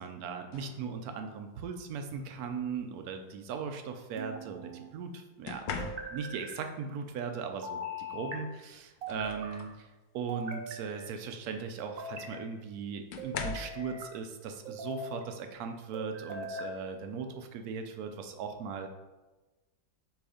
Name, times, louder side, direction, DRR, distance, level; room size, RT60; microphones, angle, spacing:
voice 1, 0.0-9.9 10.1-18.9, right 5 dB, 65° right, 6 dB, 1.0 m, -38 dB
sound 1, 0.5-0.9 2.1-2.4 5.4-6.4 8.2-8.3 8.7-9.8 10.3-10.6 12.0-12.1 13.1-13.8 15.6-15.7 16.2-16.5, left 4 dB, 80° left, 1.3 m, -41 dB
sound 2, 2.1-2.8 4.2-4.9 5.8-6.5 7.6-8.4 9.0-9.7 10.3-11.1 11.8-12.4 13.2-14.1 14.6-15.2 15.9-16.7, equal, 85° right, 1.5 m, -41 dB
6.1 x 3.2 x 4.9 m, 1.2 s
omnidirectional pair, 2.0 m